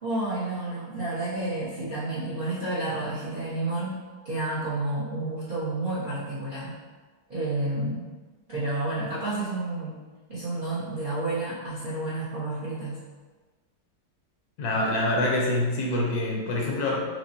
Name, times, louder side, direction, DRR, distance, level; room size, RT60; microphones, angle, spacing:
voice 1, 0.0-6.8 7.3-8.1 8.5-10.0 10.3-13.0, right 2 dB, 50° right, -10 dB, 0.6 m, -30 dB
voice 2, 14.6-17.0, left 1 dB, 70° left, -2 dB, 1.1 m, -25 dB
6.0 x 2.0 x 2.7 m, 1.3 s
omnidirectional pair, 1.8 m